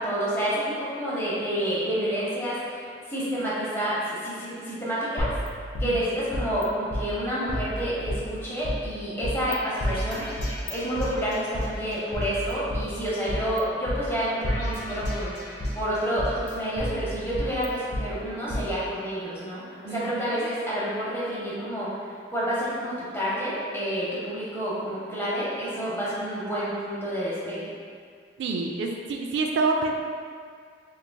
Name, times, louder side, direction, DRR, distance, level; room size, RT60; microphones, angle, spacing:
voice 1, 0.0-5.3 5.8-10.2 10.7-27.7, equal, 15° left, -9 dB, 0.9 m, -29 dB
sound 1, 5.2-6.6 6.9-7.0 7.5-8.7 9.2-9.5 9.8-11.7 12.1-13.6 13.9-14.0 14.4-15.8 16.2-18.0 18.5-18.6, equal, 65° left, 0.6 m, -31 dB
voice 2, 19.9-20.5 28.4-29.9, right 3 dB, 75° right, 2 dB, 0.3 m, -27 dB
3.6 x 3.1 x 2.2 m, 2.1 s
head